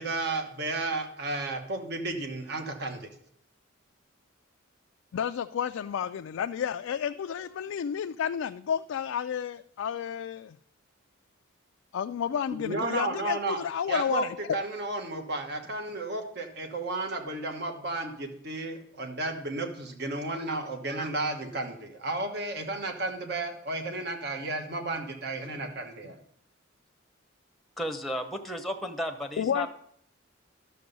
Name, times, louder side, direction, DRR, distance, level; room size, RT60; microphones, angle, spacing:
voice 1, 0.0-3.1 12.5-13.6 13.9-14.2 14.5-26.2, right 2 dB, 50° right, 5 dB, 1.2 m, -33 dB
voice 2, 5.1-10.6 11.9-14.6 29.4-29.7, left 8 dB, 70° left, 8 dB, 0.3 m, -31 dB
voice 3, 27.8-29.7, equal, ahead, 5 dB, 0.8 m, -33 dB
12.0 x 6.9 x 5.3 m, 0.66 s
head